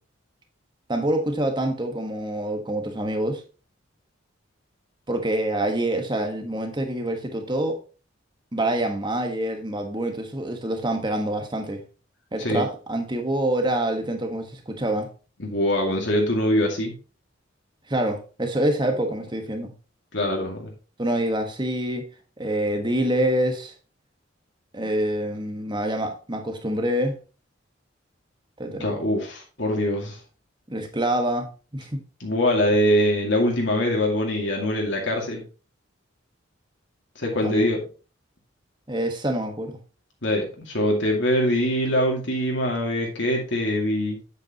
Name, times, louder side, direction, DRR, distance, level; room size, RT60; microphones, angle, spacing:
voice 1, 0.9-3.4 5.1-7.8 8.5-11.8 12.3-15.1 17.9-19.7 21.0-22.1 22.4-23.7 24.7-27.2 28.6-28.9 30.7-32.0 37.4-37.7 38.9-39.8, right 1 dB, 25° right, 1.4 m, -26 dB
voice 2, 15.4-16.9 20.1-20.7 28.8-30.2 32.2-35.4 37.2-37.8 40.2-44.2, equal, 65° left, 2.2 m, -23 dB
8.4 x 8.2 x 3.0 m
head